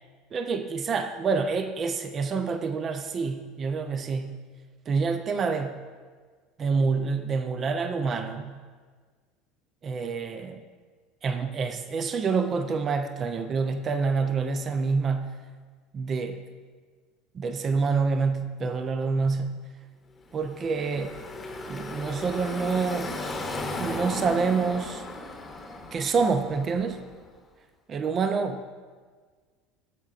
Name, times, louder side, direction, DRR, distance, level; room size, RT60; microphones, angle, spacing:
voice 1, 0.3-4.3 4.9-5.8 6.6-8.5 9.8-10.6 11.2-15.4 15.9-16.4 17.3-19.6 20.3-21.2 21.7-23.1 23.8-25.0 25.9-27.0 27.9-28.6, right 4 dB, 35° right, 8 dB, 0.6 m, -27 dB
Car passing by / Traffic noise roadway noise, 20.3-27.2, left 2 dB, 20° left, 1.0 m, -36 dB
10.5 x 7.3 x 2.5 m, 1.5 s
figure-of-eight pair, 70°, 0 cm